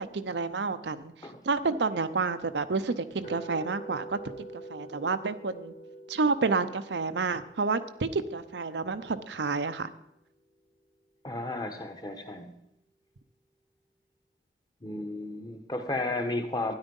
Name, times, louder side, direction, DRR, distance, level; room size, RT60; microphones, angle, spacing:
voice 1, 0.0-1.1 1.4-5.7 6.1-9.9, right 4 dB, 85° right, 10 dB, 0.7 m, -30 dB
sound 1, 3.2-9.3, right 1 dB, 40° left, 1.6 m, -46 dB
voice 2, 11.2-12.5 14.8-16.7, left 2 dB, 20° left, 6 dB, 1.1 m, -33 dB
12.5 x 10.0 x 5.4 m, 0.80 s
head